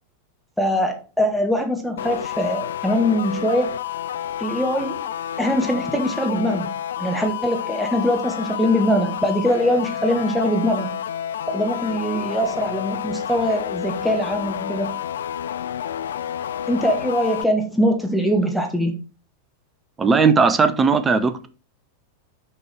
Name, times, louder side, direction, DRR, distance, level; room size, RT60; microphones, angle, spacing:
voice 1, 0.6-3.7 4.4-5.1 5.4-6.7 7.0-11.0 11.5-14.9 16.7-18.9, equal, ahead, 3 dB, 1.2 m, -22 dB
sound 1, 2.0-17.4, left 10 dB, 65° left, 0.3 m, -30 dB
voice 2, 20.0-21.5, right 5 dB, 20° right, 11 dB, 0.7 m, -17 dB
6.4 x 4.5 x 4.6 m, 0.35 s
figure-of-eight pair, 90°, 0 cm